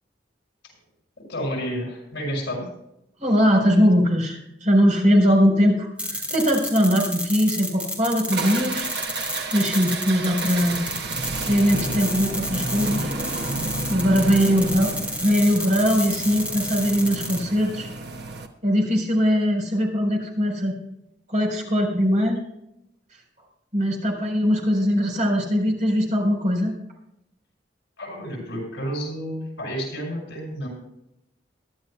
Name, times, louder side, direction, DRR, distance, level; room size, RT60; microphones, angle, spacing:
voice 1, 1.3-2.7 14.4-14.5 28.0-30.7, equal, 70° left, -1 dB, 6.0 m, -30 dB
voice 2, 3.2-8.9 9.5-10.9 11.5-13.1 13.9-17.9 18.6-20.8 21.3-22.4 23.7-26.7, equal, 45° right, 1 dB, 4.0 m, -21 dB
sound 1, 6.0-17.4, equal, 5° right, 3.3 m, -31 dB
sound 2, 8.3-18.5, right 2 dB, 65° right, 1.3 m, -31 dB
22.5 x 11.5 x 2.2 m, 0.82 s
head